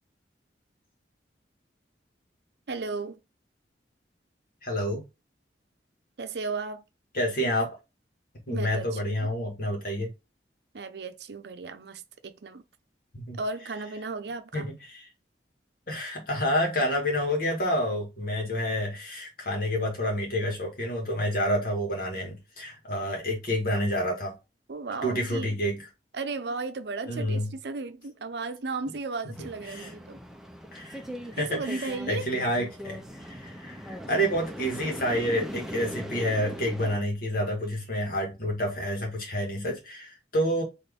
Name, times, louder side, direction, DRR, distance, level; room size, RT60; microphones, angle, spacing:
voice 1, 2.7-3.2 6.2-6.8 8.5-9.3 10.7-12.6 13.4-14.7 24.7-25.6 26.1-30.2 31.4-32.3, right 3 dB, 70° right, 0.6 m, -35 dB
voice 2, 4.6-5.0 7.1-7.8 8.5-10.1 13.1-13.4 14.5-15.1 15.9-24.3 25.0-25.8 27.1-27.5 29.7-29.9 30.7-31.0 31.3-40.6, equal, 55° left, 1.8 m, -29 dB
sound 1, 29.3-37.0, equal, 5° right, 0.5 m, -40 dB
4.3 x 3.1 x 3.5 m
head